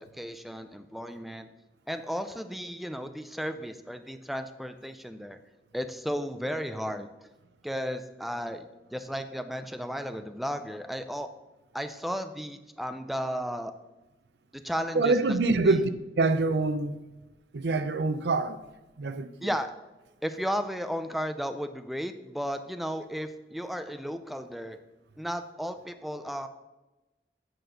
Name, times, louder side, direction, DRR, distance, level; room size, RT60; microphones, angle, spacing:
voice 1, 0.0-1.5 1.9-5.4 5.7-7.3 7.6-11.3 11.7-13.7 14.5-15.4 15.6-15.8 19.4-19.7 20.2-24.8 25.2-26.5, equal, ahead, 0.4 m, -34 dB
voice 2, 14.9-15.9 16.2-17.0 17.5-18.6 19.0-19.5, right 3 dB, 75° right, 0.5 m, -25 dB
9.0 x 4.3 x 6.4 m
head